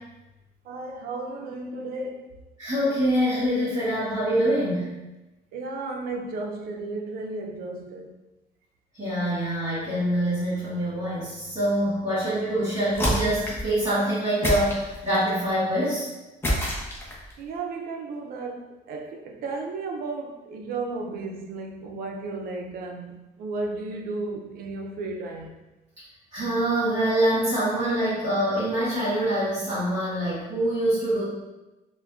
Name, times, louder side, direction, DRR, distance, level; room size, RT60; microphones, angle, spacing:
voice 1, 0.7-2.3 5.5-8.1 17.4-25.6, right 3 dB, 60° right, 0.5 m, -34 dB
voice 2, 2.6-4.9 9.0-16.1 26.3-31.2, right 1 dB, 25° right, 1.4 m, -25 dB
sound 1, 12.9-13.7 14.4-15.3 16.4-17.3, equal, 15° left, 0.7 m, -27 dB
3.5 x 2.2 x 2.4 m
cardioid pair, 110°, 17 cm